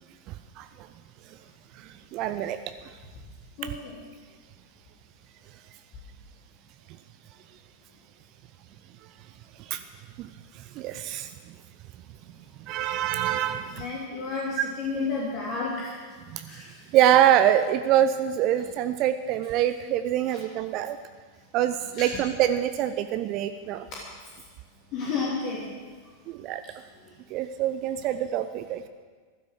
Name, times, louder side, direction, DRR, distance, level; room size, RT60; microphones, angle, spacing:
voice 1, 0.3-0.9 1.7-2.6 9.6-9.8 10.2-11.5 12.7-14.0 14.5-14.6 16.3-16.5 16.9-21.0 21.5-23.9 26.3-26.6 27.3-28.9, right 11 dB, 40° right, 10 dB, 0.6 m, -25 dB
voice 2, 13.8-15.9 16.5-16.6 22.0-22.1 24.9-25.7, left 4 dB, 40° left, -4 dB, 3.1 m, -30 dB
15.0 x 12.5 x 6.5 m, 1.5 s
figure-of-eight pair, 90°, 0 cm